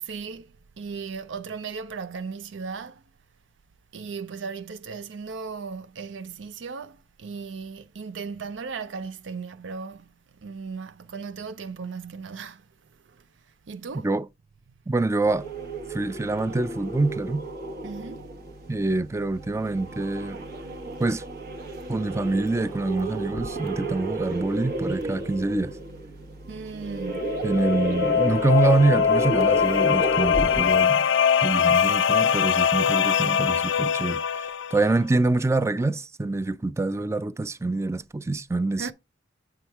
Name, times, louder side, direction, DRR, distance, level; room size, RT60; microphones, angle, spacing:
voice 1, 0.0-3.0 3.9-10.1 10.4-12.6 13.1-13.2 13.6-14.1 17.8-18.3 26.5-27.4 38.8-38.9, right 5 dB, 80° right, 0.5 m, -36 dB
voice 2, 14.9-15.5 15.9-17.4 18.7-20.4 21.0-21.2 21.9-25.7 27.4-31.1 31.4-38.9, right 2 dB, 15° right, 0.3 m, -25 dB
sound 1, 15.2-30.9, right 2 dB, 55° right, 1.2 m, -32 dB
sound 2, 27.1-34.9, left 8 dB, 70° left, 0.4 m, -22 dB
8.7 x 3.5 x 4.5 m
head